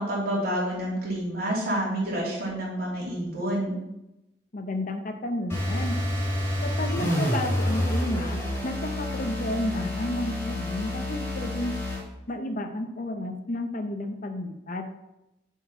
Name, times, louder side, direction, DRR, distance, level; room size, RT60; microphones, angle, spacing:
voice 1, 0.0-3.7, right 1 dB, 55° right, -5 dB, 3.2 m, -28 dB
voice 2, 4.5-6.0 6.6-11.7 12.3-14.8, left 1 dB, 45° left, 7 dB, 0.7 m, -32 dB
sound 1, 5.5-12.1, left 1 dB, 15° left, 2.4 m, -28 dB
8.0 x 4.6 x 5.7 m, 0.92 s
head